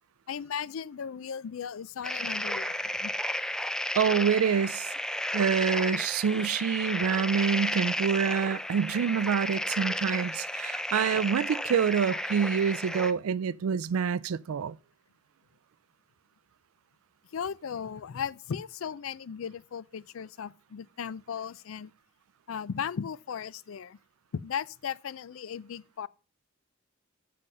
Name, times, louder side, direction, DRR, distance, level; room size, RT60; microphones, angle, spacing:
voice 1, 0.3-3.1 7.1-7.2 12.1-12.2 17.3-21.9 22.5-24.0 24.3-26.1, left 7 dB, 70° left, 0.4 m, -36 dB
sound 1, 2.0-13.1, left 1 dB, 5° left, 0.4 m, -33 dB
voice 2, 4.0-4.9 5.3-14.8, right 7 dB, 90° right, 0.4 m, -27 dB
7.7 x 7.4 x 5.3 m
head